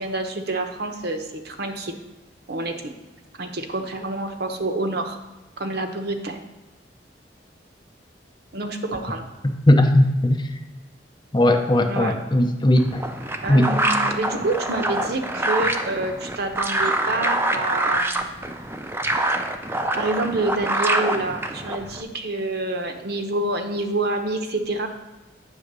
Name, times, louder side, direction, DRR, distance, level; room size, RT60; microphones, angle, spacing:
voice 1, 0.0-1.9 2.5-2.9 3.4-5.2 5.6-6.5 8.5-9.3 11.8-12.2 13.4-18.4 20.0-24.9, right 2 dB, 60° right, 5 dB, 0.9 m, -27 dB
voice 2, 9.7-10.4 11.3-13.0 13.5-13.7, left 1 dB, 25° left, 5 dB, 0.7 m, -17 dB
sound 1, 12.8-22.0, right 1 dB, 15° right, 0.5 m, -25 dB
9.1 x 3.7 x 6.7 m, 1.1 s
head